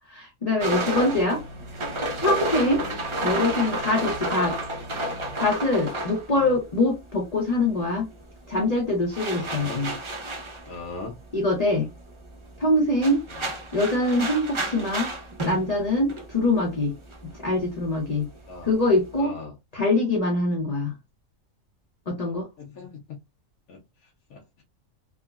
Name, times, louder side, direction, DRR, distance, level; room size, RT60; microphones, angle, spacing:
voice 1, 0.1-1.4 2.2-2.8 3.2-4.6 5.4-8.1 8.5-10.0 11.3-11.9 12.6-13.2 13.7-15.1 15.4-16.9 17.4-18.3 18.6-19.3 19.7-20.9 22.1-22.5, left 2 dB, 40° left, 0.6 m, -24 dB
sound 1, 0.6-7.3 7.6-19.2, right 1 dB, 40° right, 0.4 m, -32 dB
voice 2, 9.4-9.8 10.7-11.1 18.5-18.7 19.2-19.5 22.6-23.0 23.7-23.8 24.3-24.6, left 3 dB, 80° left, 1.1 m, -39 dB
3.5 x 2.1 x 2.3 m
omnidirectional pair, 1.5 m